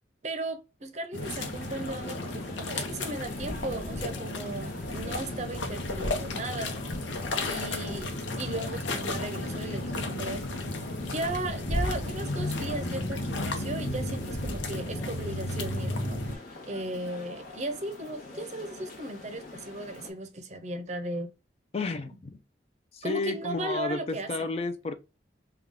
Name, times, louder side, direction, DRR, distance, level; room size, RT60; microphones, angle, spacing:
voice 1, 0.2-6.8 7.5-10.4 11.0-16.2 16.7-21.3 23.0-24.5, right 2 dB, 40° right, 0.6 m, -36 dB
sound 1, 1.1-16.4, left 2 dB, 85° left, 0.7 m, -33 dB
sound 2, 1.2-20.1, left 3 dB, 50° left, 1.0 m, -45 dB
voice 2, 21.7-22.4 22.9-24.9, left 3 dB, 35° left, 0.4 m, -32 dB
3.5 x 2.3 x 3.5 m
head